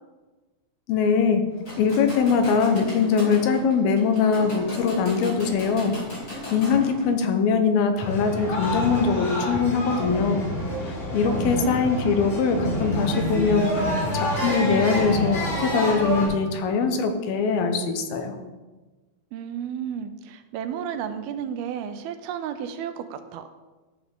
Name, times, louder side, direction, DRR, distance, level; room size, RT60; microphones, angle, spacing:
voice 1, 0.9-1.4 1.8-6.0 6.5-10.5 11.1-13.7 14.1-18.4, left 5 dB, 80° left, 6 dB, 2.7 m, -22 dB
sound 1, 1.5-7.1, left 1 dB, 25° left, 2.7 m, -37 dB
sound 2, 8.0-16.3, equal, 50° left, 4.2 m, -27 dB
voice 2, 11.3-11.8 19.3-23.5, right 8 dB, 85° right, 9 dB, 2.5 m, -33 dB
11.5 x 7.2 x 3.7 m, 1.2 s
omnidirectional pair, 4.3 m